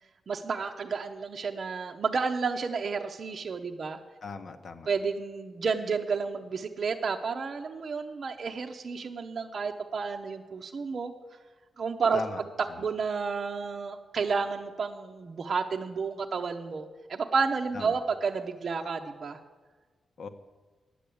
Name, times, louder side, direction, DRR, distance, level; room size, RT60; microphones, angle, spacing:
voice 1, 0.3-4.0 4.9-11.1 11.8-12.5 12.8-19.4, right 5 dB, 45° right, 3 dB, 0.6 m, -31 dB
voice 2, 4.2-4.9 12.1-12.4 12.7-12.8 17.7-18.0 20.2-20.3, left 4 dB, 55° left, 9 dB, 0.9 m, -39 dB
10.0 x 7.7 x 8.4 m, 1.4 s
wide cardioid pair, 135°, 0 cm